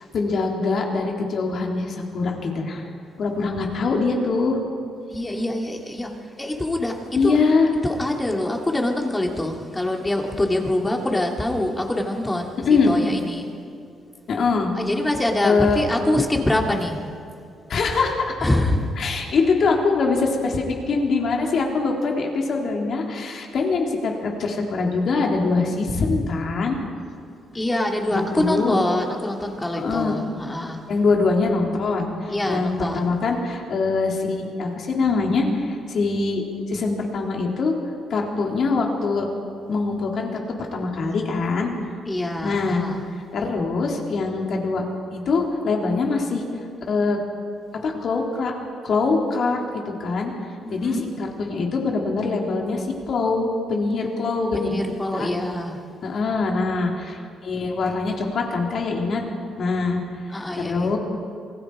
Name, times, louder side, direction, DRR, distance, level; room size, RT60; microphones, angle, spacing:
voice 1, 0.1-2.9 3.2-4.6 7.1-7.7 12.6-12.9 14.3-14.7 15.4-15.8 17.7-18.4 19.0-26.8 28.1-28.8 29.7-30.2 30.9-36.4 36.7-37.7 38.1-39.3 39.7-40.4 40.7-41.7 42.4-42.8 43.3-44.8 45.1-46.4 46.9-47.2 47.8-48.5 48.8-50.3 50.7-54.8 55.1-55.3 56.0-59.2 59.6-60.0 60.3-61.0, left 4 dB, 60° left, 0 dB, 3.9 m, -23 dB
voice 2, 5.1-6.1 6.4-7.4 7.8-13.5 14.8-17.0 18.4-18.8 27.5-30.8 32.3-33.2 42.1-43.0 50.6-51.1 54.5-55.8 60.3-60.9, left 1 dB, 15° left, 1 dB, 2.7 m, -25 dB
27.5 x 19.5 x 5.1 m, 2.4 s
cardioid pair, 90°, 0 cm